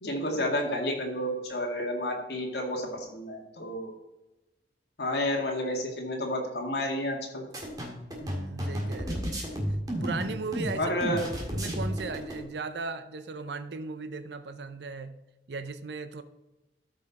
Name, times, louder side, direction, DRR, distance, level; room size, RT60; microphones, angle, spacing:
voice 1, 0.0-3.9 5.0-7.4 10.8-11.2, left 1 dB, 65° left, 1 dB, 2.0 m, -30 dB
sound 1, 7.5-12.4, equal, 20° right, 1.8 m, -32 dB
voice 2, 8.2-9.4 9.9-11.2 11.5-15.2 15.5-16.2, right 4 dB, 70° right, 11 dB, 0.6 m, -37 dB
13.0 x 5.5 x 4.1 m, 1.0 s
head